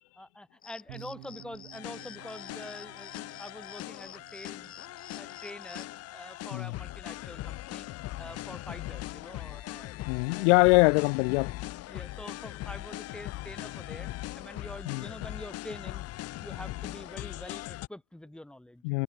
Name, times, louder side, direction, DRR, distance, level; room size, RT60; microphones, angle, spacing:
voice 1, 0.2-4.7 5.1-7.9 8.2-10.5 11.9-14.1 14.3-16.0 16.4-18.8, left 1 dB, ahead, 3.2 m, -46 dB
sound 1, 0.6-6.0, left 8 dB, 20° left, 4.9 m, -51 dB
sound 2, 0.9-10.3, right 21 dB, 90° right, 5.6 m, -56 dB
sound 3, 1.7-17.9, left 17 dB, 35° left, 3.7 m, -40 dB
voice 2, 10.1-11.5 14.9-15.0 18.8-19.0, left 30 dB, 60° left, 1.2 m, -23 dB
cardioid pair, 175°, 40 cm